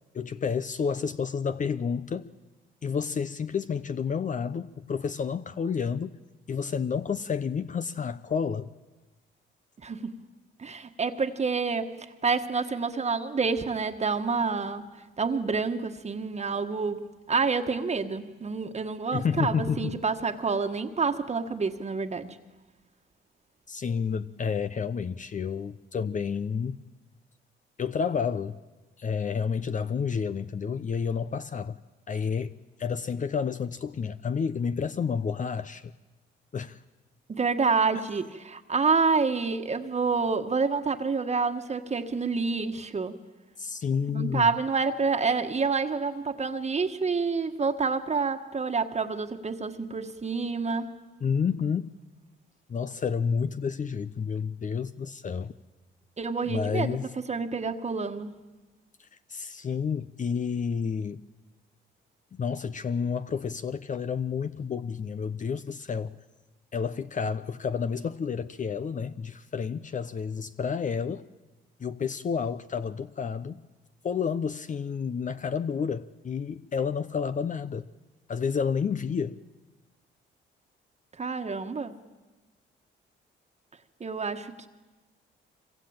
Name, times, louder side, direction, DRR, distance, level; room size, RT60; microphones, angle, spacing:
voice 1, 0.1-2.3 2.8-6.2 6.5-8.7 19.1-20.0 23.7-26.8 27.8-28.6 29.0-31.8 32.1-35.9 36.5-36.8 43.6-44.5 51.2-51.9 52.7-55.5 56.5-57.1 59.0-61.2 62.3-66.2 66.7-71.3 71.8-73.7 74.0-77.9 78.3-79.4, left 6 dB, 40° left, 0.8 m, -30 dB
voice 2, 9.8-10.2 10.6-11.9 12.2-14.9 15.2-22.4 37.3-43.2 44.1-50.9 56.2-58.3 81.2-81.9 84.0-84.7, right 4 dB, 35° right, 1.6 m, -28 dB
25.5 x 24.0 x 8.8 m
cardioid pair, 90°, 20 cm